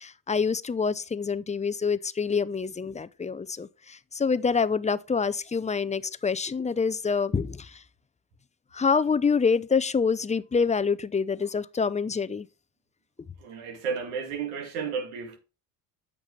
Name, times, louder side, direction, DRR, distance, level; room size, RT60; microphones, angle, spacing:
voice 1, 0.0-7.8 8.7-12.5, left 5 dB, 15° left, 0.6 m, -26 dB
voice 2, 13.4-15.4, right 6 dB, 85° right, 2.2 m, -32 dB
8.9 x 6.1 x 3.3 m
supercardioid pair, 70°, 44 cm